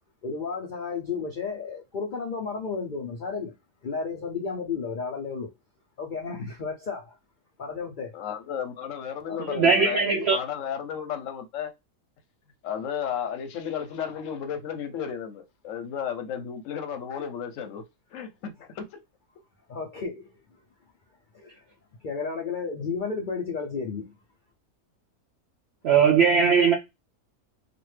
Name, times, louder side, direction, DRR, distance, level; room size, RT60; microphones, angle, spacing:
voice 1, 0.2-3.5 3.8-5.5 6.0-7.2 7.6-8.1 9.2-10.3 17.1-17.2 19.7-20.3 21.3-21.6 22.0-24.1, left 5 dB, 90° left, 0.4 m, -33 dB
voice 2, 8.1-10.0 10.3-11.7 12.6-17.8 18.1-18.8, left 8 dB, 65° left, 0.9 m, -33 dB
voice 3, 9.4-10.4 25.8-26.7, right 6 dB, 80° right, 0.5 m, -20 dB
2.9 x 2.4 x 3.2 m
omnidirectional pair, 1.6 m